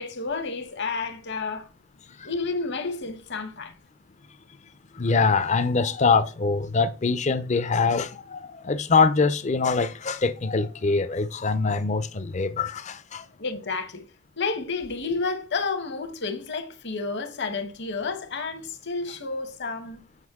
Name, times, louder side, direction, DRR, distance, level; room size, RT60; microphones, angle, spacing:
voice 1, 0.0-1.7 2.2-3.7 13.4-14.0 14.4-20.0, left 4 dB, 50° left, 1.0 m, -30 dB
voice 2, 4.9-13.3, left 4 dB, 30° left, 0.5 m, -24 dB
8.1 x 5.1 x 3.6 m
head